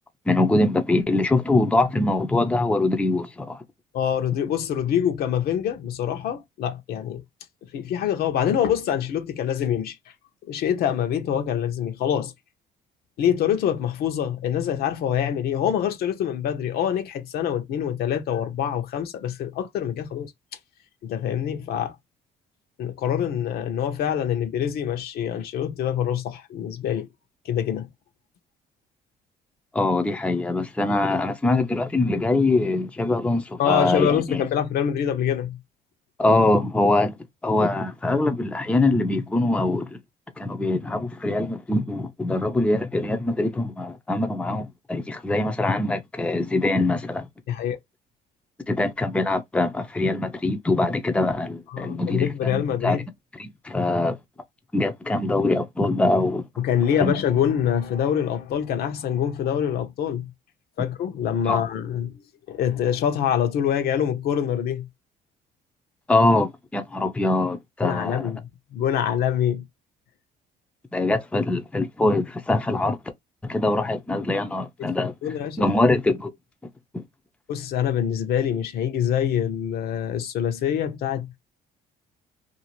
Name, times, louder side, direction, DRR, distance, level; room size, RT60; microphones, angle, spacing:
voice 1, 0.3-3.6 29.7-34.4 36.2-37.2 37.4-40.0 40.4-47.3 48.7-53.0 53.3-54.2 54.7-56.5 57.0-57.1 61.5-61.6 66.1-68.3 70.9-73.0 73.4-75.1 75.6-76.3 76.9-77.0, left 2 dB, 5° left, 0.5 m, -23 dB
voice 2, 3.9-7.2 7.7-10.0 10.5-12.3 13.2-20.3 21.0-21.9 22.8-27.1 27.4-27.9 33.6-35.6 47.5-47.8 51.7-53.1 56.6-60.3 60.8-62.1 62.5-64.9 67.8-69.6 74.8-75.7 77.5-81.4, left 9 dB, 65° left, 0.7 m, -25 dB
2.6 x 2.5 x 2.9 m
cardioid pair, 110°, 17 cm